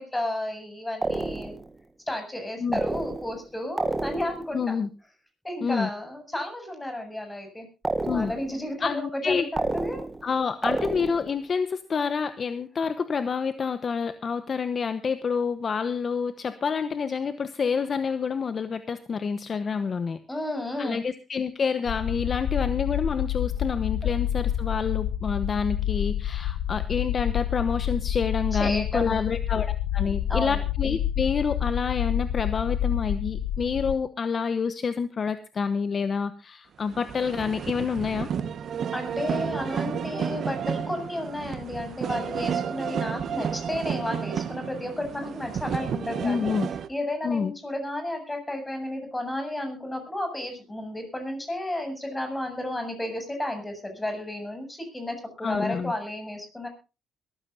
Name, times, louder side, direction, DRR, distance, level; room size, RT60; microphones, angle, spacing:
voice 1, 0.0-1.6 2.1-4.8 5.4-7.7 8.1-10.0 20.3-21.0 28.5-29.3 30.3-30.6 38.9-46.5 46.9-56.7, left 1 dB, 15° left, 6 dB, 7.6 m, -32 dB
sound 1, 1.0-1.7 2.7-3.4 3.8-4.5 7.8-8.6 9.6-10.3 10.6-11.4, right 2 dB, 20° right, 1.5 m, -29 dB
voice 2, 4.5-4.9 5.6-5.9 8.0-8.3 8.8-9.5 10.2-20.2 20.8-38.3 46.2-46.7 47.2-47.5 55.4-55.9, left 5 dB, 45° left, 11 dB, 1.0 m, -28 dB
sound 2, 21.9-34.0, left 11 dB, 85° left, 0.8 m, -28 dB
sound 3, 36.9-46.9, right 7 dB, 60° right, 1.3 m, -31 dB
22.0 x 15.0 x 2.7 m, 0.30 s
cardioid pair, 90°, 0 cm